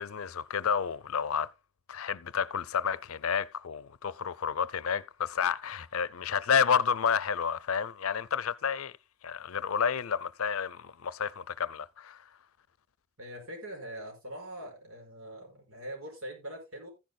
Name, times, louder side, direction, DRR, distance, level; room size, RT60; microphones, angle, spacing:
voice 1, 0.0-1.5 1.9-8.9 9.2-12.2, left 6 dB, 80° left, 0.5 m, -30 dB
voice 2, 13.2-16.9, right 1 dB, 85° right, 5.5 m, -42 dB
14.5 x 10.5 x 2.2 m
head